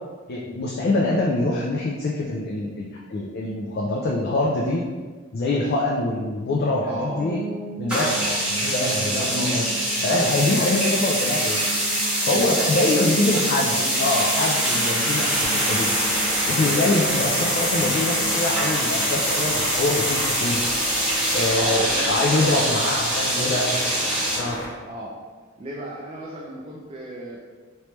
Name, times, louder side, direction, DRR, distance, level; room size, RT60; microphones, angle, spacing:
voice 1, 0.3-4.8 5.3-7.4 7.8-9.6 10.0-11.6 12.3-15.9 16.5-20.6 21.3-23.7 24.3-24.6, left 2 dB, 50° left, -2 dB, 0.4 m, -24 dB
voice 2, 6.9-7.2 9.1-9.6 12.3-14.0 14.6-14.8 21.6-22.9 23.3-23.9 24.8-25.2 25.6-27.4, right 1 dB, 30° right, -4 dB, 0.4 m, -34 dB
sound 1, 7.2-20.1, right 3 dB, 25° left, 0.9 m, -37 dB
sound 2, 7.9-24.4, right 1 dB, 5° right, 1.1 m, -24 dB
Truck, 15.3-24.7, left 1 dB, 70° left, 0.8 m, -33 dB
3.2 x 3.1 x 3.0 m, 1.5 s
head